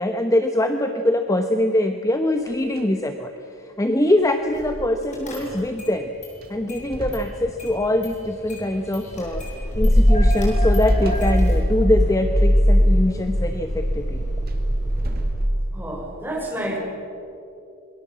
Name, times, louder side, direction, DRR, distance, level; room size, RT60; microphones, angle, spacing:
voice 1, 0.0-3.3 3.8-6.1 6.5-9.4 9.8-14.3, left 1 dB, 15° left, 5 dB, 0.9 m, -23 dB
sound 1, 2.3-3.2 3.5-3.6 5.8-5.9 6.3-8.0 10.8-11.8 14.3-16.0, right 1 dB, 45° right, 2.0 m, -39 dB
Car / Engine starting, 4.6-4.8 5.1-5.9 6.2-7.3 7.6-15.3, equal, 35° left, 7.2 m, -21 dB
voice 2, 15.7-16.8, right 1 dB, 10° right, -2 dB, 5.8 m, -29 dB
26.5 x 22.5 x 7.5 m, 2.7 s
head